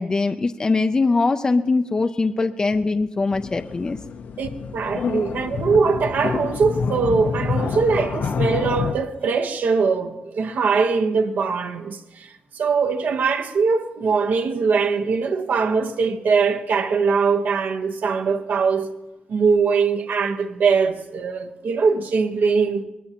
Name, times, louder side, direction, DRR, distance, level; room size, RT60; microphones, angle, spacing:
voice 1, 0.0-4.0, left 3 dB, 25° left, 0.4 m, -22 dB
sound 1, 3.3-8.9, left 5 dB, 60° left, 0.7 m, -27 dB
voice 2, 4.4-18.9 19.3-22.8, right 5 dB, 70° right, 1.1 m, -21 dB
24.0 x 20.0 x 2.9 m
wide cardioid pair, 135°, 3 cm